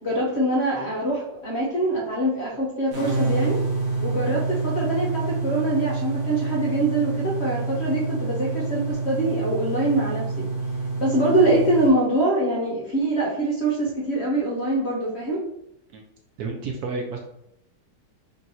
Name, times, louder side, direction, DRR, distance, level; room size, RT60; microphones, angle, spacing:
voice 1, 0.0-3.6 4.0-10.2 11.0-15.4, right 1 dB, 55° left, -3 dB, 0.8 m, -24 dB
sound 1, 2.9-11.9, right 3 dB, 90° right, 1.8 m, -27 dB
voice 2, 16.4-17.2, right 4 dB, 70° right, 1 dB, 0.9 m, -30 dB
3.7 x 2.5 x 4.1 m, 0.80 s
omnidirectional pair, 2.0 m